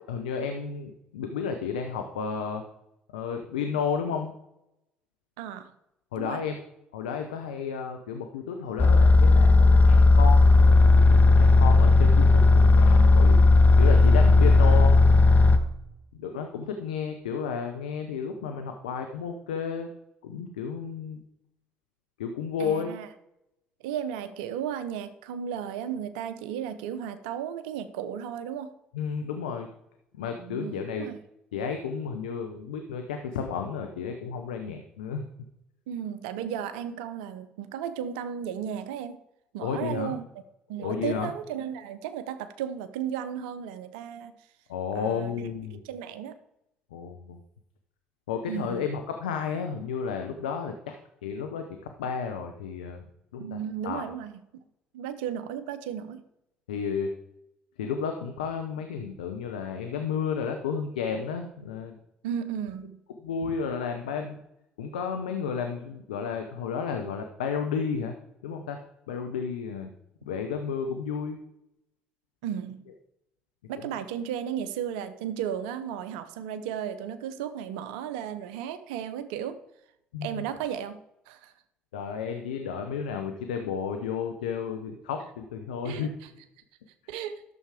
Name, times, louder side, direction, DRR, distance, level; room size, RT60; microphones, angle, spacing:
voice 1, 0.1-2.6 3.1-4.3 6.1-6.5 6.9-13.4 13.7-15.0 16.2-19.9 20.2-21.2 22.2-22.9 28.9-29.7 30.1-31.1 31.5-35.2 39.6-40.1 40.8-41.3 44.7-45.8 46.9-47.4 48.3-51.0 51.2-53.0 53.3-53.6 53.8-54.0 56.7-57.1 57.8-62.0 63.2-64.4 64.8-68.1 68.4-68.8 69.1-69.9 70.2-71.4 80.1-80.4 81.9-86.1, left 6 dB, 85° left, 5 dB, 0.8 m, -32 dB
voice 2, 5.4-5.7 6.2-6.4 14.6-14.8 22.6-23.1 23.8-28.7 30.4-31.2 35.9-39.2 39.5-40.2 40.7-44.3 44.9-45.3 45.8-46.3 48.5-48.9 53.4-54.4 54.9-56.2 62.2-63.0 72.4-72.8 73.7-79.6 80.2-81.0 81.3-81.5 85.8-86.1 87.1-87.4, right 9 dB, 80° right, 11 dB, 0.8 m, -34 dB
sound 1, 8.8-15.6, left 3 dB, 35° left, 1.4 m, -16 dB
12.0 x 7.1 x 4.9 m, 0.84 s
hypercardioid pair, 55°, 5 cm